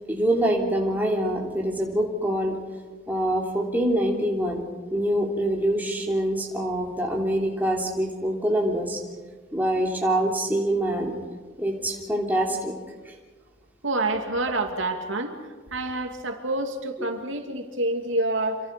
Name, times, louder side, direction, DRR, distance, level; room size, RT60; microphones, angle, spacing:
voice 1, 0.1-2.6 3.1-4.6 4.9-9.0 9.5-11.1 11.6-12.7 13.0-13.1, right 1 dB, 10° right, -1 dB, 3.1 m, -25 dB
voice 2, 13.8-15.3 15.7-18.6, right 2 dB, 80° right, 4 dB, 2.6 m, -27 dB
27.5 x 25.5 x 5.3 m, 1.4 s
head